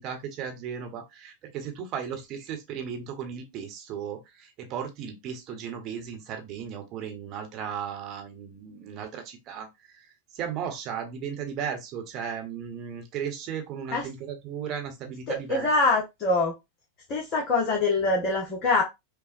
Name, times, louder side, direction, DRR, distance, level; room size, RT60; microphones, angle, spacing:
voice 1, 0.0-9.7 10.3-15.7, right 7 dB, 35° right, 1.1 m, -35 dB
voice 2, 15.3-16.5 17.1-18.8, left 3 dB, 35° left, 0.9 m, -24 dB
5.6 x 2.2 x 2.6 m
figure-of-eight pair, 90°, 0 cm